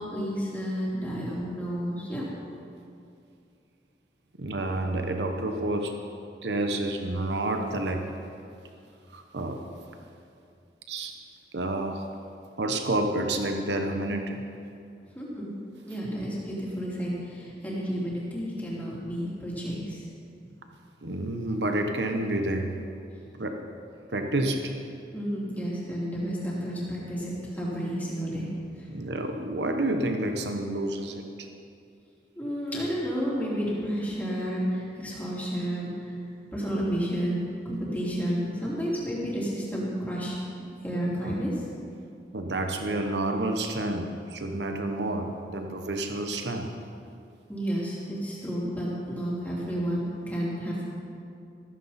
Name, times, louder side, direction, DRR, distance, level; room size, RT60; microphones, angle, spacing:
voice 1, 0.0-2.2 15.2-15.5 15.9-20.0 25.1-28.5 32.4-35.9 36.5-40.4 40.8-41.5 47.5-50.9, equal, 10° left, -7 dB, 3.3 m, -31 dB
voice 2, 4.4-5.9 6.4-8.1 9.1-9.6 10.9-11.1 11.5-12.0 12.6-14.4 21.0-22.7 23.4-23.6 24.1-24.7 28.9-31.5 41.2-41.4 42.3-46.7, right 1 dB, 85° right, 4 dB, 1.1 m, -29 dB
15.0 x 14.5 x 4.3 m, 2.5 s
head